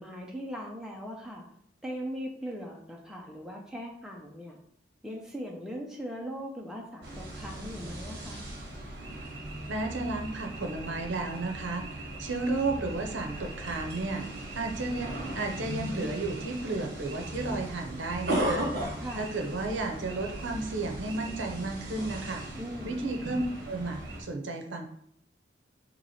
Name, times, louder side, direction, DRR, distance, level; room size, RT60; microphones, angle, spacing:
voice 1, 0.0-1.4 1.8-4.6 5.0-8.4 19.0-19.3 22.5-23.0, equal, 5° right, -2 dB, 0.5 m, -39 dB
sound 1, 7.0-24.2, right 1 dB, 55° right, 1.2 m, -37 dB
voice 2, 9.7-11.8 12.2-14.3 14.5-18.7 19.1-22.4 22.8-24.9, right 2 dB, 80° right, 3 dB, 0.6 m, -33 dB
3.0 x 2.8 x 4.1 m, 0.70 s
head